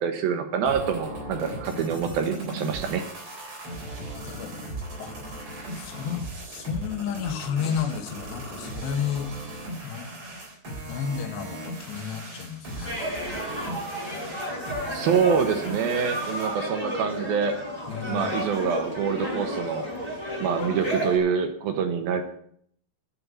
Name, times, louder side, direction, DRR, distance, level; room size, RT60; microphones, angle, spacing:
voice 1, 0.0-3.0 14.9-17.6 18.1-19.9 20.4-22.2, right 6 dB, 70° right, 7 dB, 2.7 m, -26 dB
sound 1, 0.6-16.6, right 1 dB, 35° right, 4.2 m, -38 dB
voice 2, 3.8-4.5 5.0-5.1 5.7-9.3 9.8-10.1 10.9-13.0 17.9-18.4, left 8 dB, 80° left, 5 dB, 3.6 m, -32 dB
sound 2, 12.8-21.2, equal, 5° right, 7.1 m, -32 dB
9.8 x 8.5 x 9.4 m, 0.66 s
omnidirectional pair, 4.9 m